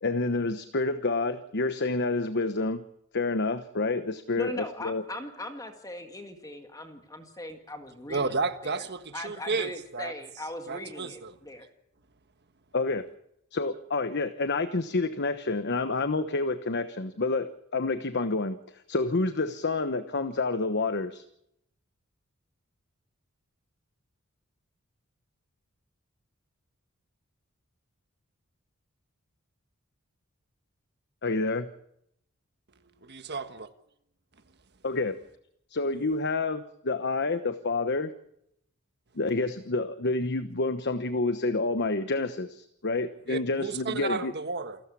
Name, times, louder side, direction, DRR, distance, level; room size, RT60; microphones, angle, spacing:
voice 1, 0.0-2.8 3.1-5.0 12.7-13.1 13.5-21.2 31.2-31.7 34.8-35.2 35.7-38.1 39.1-44.3, left 3 dB, 55° left, 1.1 m, -28 dB
voice 2, 4.4-8.9 9.1-11.7, left 1 dB, 15° left, 1.9 m, -40 dB
voice 3, 8.1-10.1 10.7-11.3 33.0-33.7 43.3-44.8, right 4 dB, 50° right, 1.5 m, -32 dB
28.5 x 13.0 x 8.5 m
head